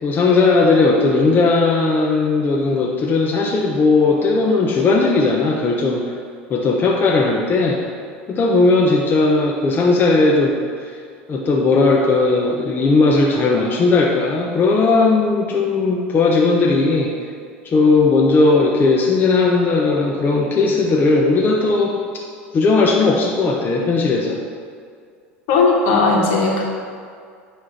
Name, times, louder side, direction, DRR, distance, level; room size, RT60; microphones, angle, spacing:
voice 1, 0.0-6.0 6.5-7.8 8.3-10.6 11.3-17.1 17.6-22.0 22.5-24.4, left 3 dB, 30° left, -2 dB, 0.9 m, -17 dB
voice 2, 25.5-26.6, left 3 dB, 60° left, -1 dB, 1.6 m, -16 dB
9.7 x 3.3 x 5.8 m, 2.2 s
hypercardioid pair, 85°, 7 cm